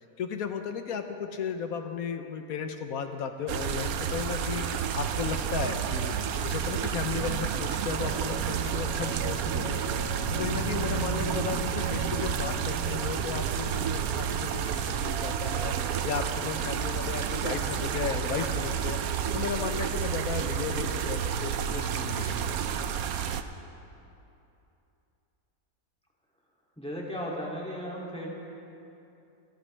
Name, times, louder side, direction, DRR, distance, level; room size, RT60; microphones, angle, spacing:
voice 1, 0.0-9.8 10.3-22.8, left 6 dB, 65° left, 7 dB, 1.2 m, -35 dB
sound 1, 3.5-23.4, right 8 dB, 65° right, 1.0 m, -30 dB
sound 2, 8.0-13.1, right 4 dB, 90° right, 1.7 m, -36 dB
voice 2, 26.8-28.3, equal, 5° left, -4 dB, 2.5 m, -35 dB
29.0 x 11.5 x 3.3 m, 2.8 s
omnidirectional pair, 1.8 m